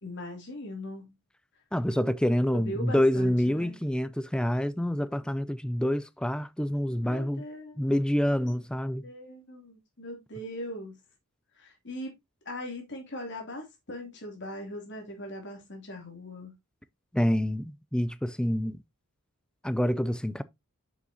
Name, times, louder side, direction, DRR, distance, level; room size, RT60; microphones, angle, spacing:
voice 1, 0.0-1.2 2.5-3.8 7.1-7.9 9.0-11.0 11.5-12.1 12.4-16.5, left 1 dB, 55° left, 2.8 m, -40 dB
voice 2, 1.7-7.4 7.8-9.1 17.1-18.8 19.6-20.4, equal, 5° left, 0.3 m, -27 dB
7.6 x 6.2 x 2.7 m
head